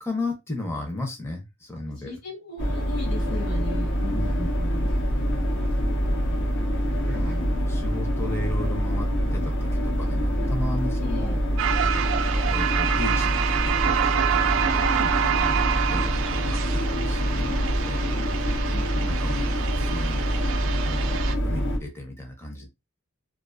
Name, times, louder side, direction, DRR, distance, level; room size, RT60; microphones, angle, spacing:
voice 1, 0.0-2.1 4.1-4.8 7.1-11.4 12.2-14.8 15.3-17.6 17.9-18.0 19.0-20.3 20.5-22.7, left 2 dB, 10° left, 0.6 m, -35 dB
voice 2, 1.7-5.8 11.0-11.4 14.8-15.2, left 2 dB, 85° left, 1.2 m, -39 dB
sound 1, 2.6-21.8, equal, 60° left, 0.6 m, -25 dB
sound 2, 11.6-21.3, right 9 dB, 65° right, 0.3 m, -27 dB
2.4 x 2.3 x 2.4 m
head